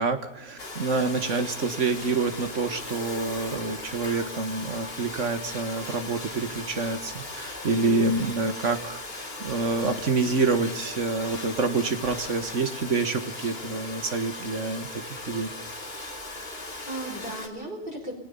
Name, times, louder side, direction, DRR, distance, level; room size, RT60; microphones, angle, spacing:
voice 1, 0.0-15.0 15.3-15.5, right 3 dB, 80° right, 8 dB, 2.0 m, -27 dB
Domestic sounds home sounds, 0.6-17.5, left 2 dB, 55° left, 2.4 m, -38 dB
voice 2, 16.3-18.1, right 1 dB, 45° right, 1 dB, 5.0 m, -37 dB
29.0 x 19.0 x 5.7 m, 0.86 s
omnidirectional pair, 1.3 m